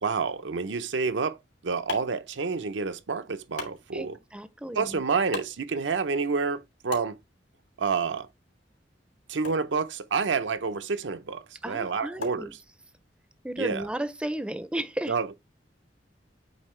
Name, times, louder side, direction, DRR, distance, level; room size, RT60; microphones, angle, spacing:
voice 1, 0.0-1.4 1.6-4.2 4.7-7.2 7.8-8.3 9.3-12.5 13.6-13.9 15.1-15.3, right 5 dB, 85° right, 0.7 m, -28 dB
sound 1, 1.2-13.1, left 4 dB, 85° left, 3.0 m, -45 dB
voice 2, 3.9-5.0 11.6-12.5 13.4-15.1, right 1 dB, 5° right, 0.4 m, -34 dB
8.2 x 3.7 x 3.2 m
head